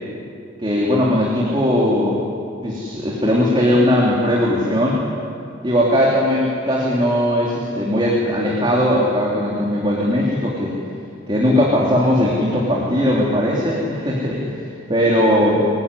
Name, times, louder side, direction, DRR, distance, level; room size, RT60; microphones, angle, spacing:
voice 1, 0.6-2.2 2.6-5.0 5.6-10.7 11.3-14.6 14.9-15.6, equal, 25° right, -4 dB, 3.3 m, -18 dB
24.5 x 18.0 x 9.9 m, 2.4 s
head